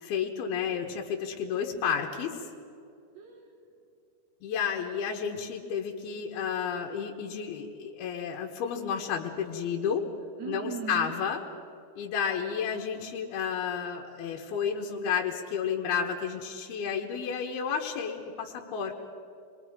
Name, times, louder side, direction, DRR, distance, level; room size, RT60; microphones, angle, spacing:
voice 1, 0.0-2.5 4.4-10.0 10.5-11.4 12.0-18.9, left 7 dB, 90° left, 0 dB, 3.3 m, -31 dB
voice 2, 3.1-3.6 10.4-11.2, right 7 dB, 50° right, 1 dB, 3.4 m, -38 dB
28.5 x 23.0 x 5.0 m, 2.6 s
omnidirectional pair, 4.3 m